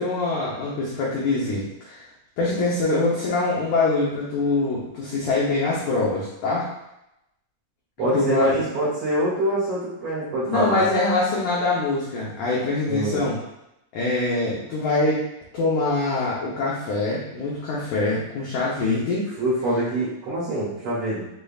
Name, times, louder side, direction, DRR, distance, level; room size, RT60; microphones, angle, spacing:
voice 1, 0.0-2.0 2.4-6.7 8.1-8.5 10.4-13.4 13.9-15.2 15.5-19.3, left 3 dB, 80° left, -6 dB, 1.7 m, -24 dB
voice 2, 8.0-10.9 12.9-13.2 19.4-21.3, right 1 dB, 55° right, -11 dB, 3.0 m, -25 dB
6.8 x 3.2 x 2.3 m, 0.85 s
omnidirectional pair, 4.6 m